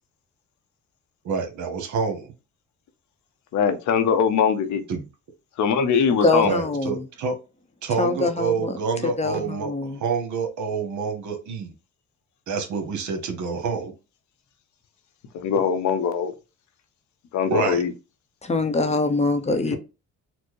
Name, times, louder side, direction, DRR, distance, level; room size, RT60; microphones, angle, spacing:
voice 1, 1.2-2.3 4.9-5.0 6.4-7.3 7.8-11.7 12.5-13.9 17.5-17.8 19.7-19.8, right 5 dB, 70° right, 1.1 m, -27 dB
voice 2, 3.5-4.8 5.6-6.5 15.3-16.3 17.3-17.9 19.5-19.8, left 7 dB, 70° left, 0.7 m, -22 dB
voice 3, 6.2-7.0 8.0-8.7 9.0-10.0 18.4-19.8, left 2 dB, 20° left, 0.6 m, -23 dB
4.4 x 2.0 x 3.0 m
cardioid pair, 85°, 30 cm